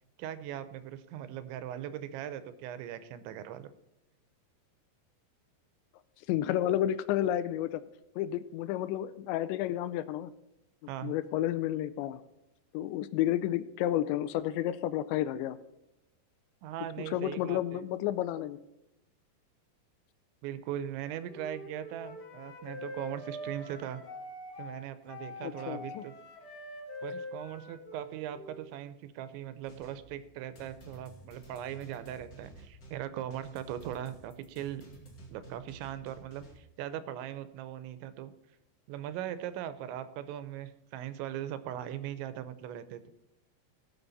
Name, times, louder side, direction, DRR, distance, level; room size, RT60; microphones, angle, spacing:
voice 1, 0.2-3.7 10.9-11.1 16.6-17.8 20.4-24.0 24.6-26.1 27.0-34.8 35.3-38.3 38.9-43.0, right 11 dB, 85° right, 13 dB, 3.0 m, -40 dB
voice 2, 6.3-7.8 8.2-10.3 11.0-12.2 12.7-15.6 17.1-18.6 25.4-26.0, left 12 dB, 85° left, 14 dB, 2.8 m, -31 dB
Wind instrument woodwind instrument, 21.2-28.7, left 1 dB, 55° left, 1.1 m, -44 dB
sound 1, 29.6-36.6, right 3 dB, 35° left, 1.5 m, -52 dB
18.0 x 6.1 x 4.0 m, 0.90 s
omnidirectional pair, 5.2 m